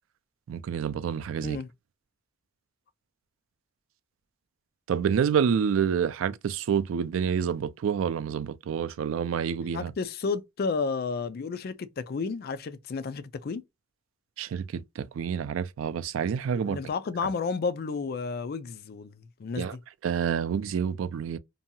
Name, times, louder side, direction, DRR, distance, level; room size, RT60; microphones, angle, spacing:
voice 1, 0.5-1.6 4.9-9.9 14.4-16.8 19.6-19.8 20.0-21.4, right 7 dB, 75° right, 0.3 m, -28 dB
voice 2, 9.7-13.6 16.5-19.8, left 4 dB, 50° left, 0.4 m, -32 dB
2.7 x 2.3 x 2.6 m
head